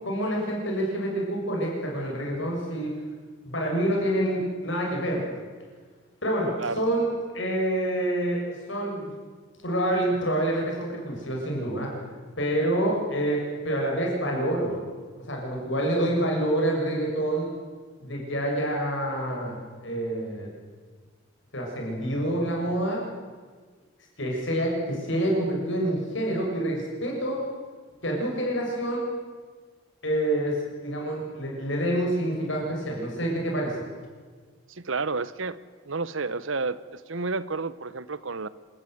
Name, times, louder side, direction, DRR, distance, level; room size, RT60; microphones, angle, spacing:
voice 1, 0.0-3.0 3.4-5.3 6.2-9.1 9.6-11.9 12.4-14.8 15.3-17.5 18.0-20.5 21.5-23.0 24.2-27.5 28.0-29.1 30.0-33.8, right 1 dB, 65° left, -1 dB, 7.1 m, -27 dB
voice 2, 34.7-35.6 35.8-38.5, right 4 dB, 70° right, 17 dB, 0.9 m, -31 dB
27.5 x 14.0 x 9.4 m, 1.5 s
head